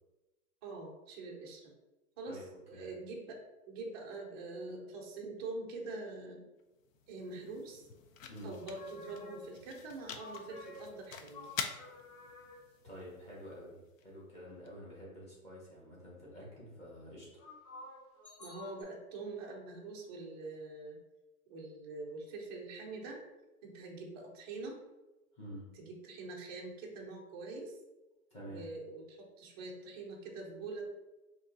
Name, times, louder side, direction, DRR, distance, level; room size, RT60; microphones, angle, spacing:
voice 1, 0.6-1.7 2.2-2.4 2.7-3.4 3.7-6.4 7.1-7.9 8.4-11.5 18.4-21.0 21.5-23.2 23.6-24.8 25.7-27.8 28.4-30.8, right 3 dB, 20° right, -1 dB, 0.4 m, -44 dB
cd case, 6.6-14.7, left 6 dB, 65° left, 0.7 m, -47 dB
sound 1, 8.6-9.7 10.2-12.7 17.4-18.8, left 3 dB, 85° left, 1.2 m, -51 dB
voice 2, 12.8-17.3 25.3-25.7 28.3-28.7, equal, 15° left, -6 dB, 1.4 m, -48 dB
5.4 x 2.9 x 2.6 m, 1.0 s
hypercardioid pair, 150°, 42 cm